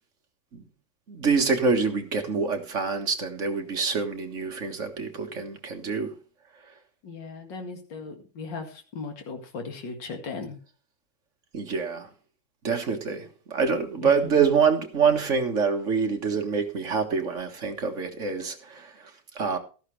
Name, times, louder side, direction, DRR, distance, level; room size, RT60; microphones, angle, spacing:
voice 1, 1.1-6.1 11.5-12.1 12.6-19.6, right 5 dB, 40° right, 1.6 m, -26 dB
voice 2, 7.0-10.6 14.0-14.3, left 4 dB, 60° left, 2.7 m, -37 dB
13.0 x 11.5 x 3.3 m
omnidirectional pair, 2.2 m